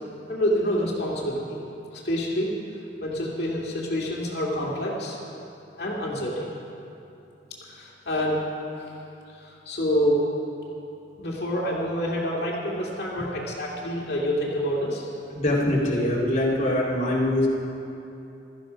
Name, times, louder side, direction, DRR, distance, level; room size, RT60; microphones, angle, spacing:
voice 1, 0.3-1.6 1.9-2.5 3.0-5.2 5.8-6.5 7.6-8.4 8.8-8.9 9.3-10.2 11.2-15.1, equal, 60° left, -4 dB, 2.3 m, -27 dB
voice 2, 15.4-17.5, left 1 dB, 40° left, -6 dB, 2.2 m, -23 dB
16.0 x 13.5 x 5.2 m, 2.8 s
head